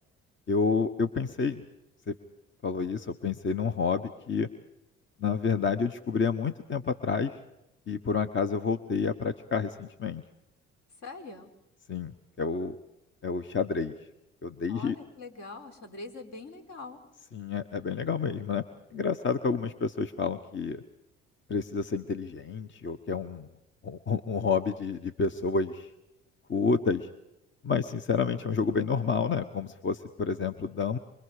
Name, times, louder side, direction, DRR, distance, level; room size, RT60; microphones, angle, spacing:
voice 1, 0.5-1.6 2.1-2.2 2.6-4.5 5.2-7.4 7.9-10.2 11.9-12.8 13.2-14.0 14.4-15.0 17.3-18.6 18.9-20.8 21.5-23.5 23.8-25.9 26.5-27.1 27.6-31.0, left 5 dB, 40° left, 10 dB, 1.2 m, -29 dB
voice 2, 11.0-11.5 14.7-17.0, left 3 dB, 60° left, 4 dB, 4.2 m, -43 dB
27.0 x 25.0 x 5.0 m, 0.92 s
supercardioid pair, 65°, 30 cm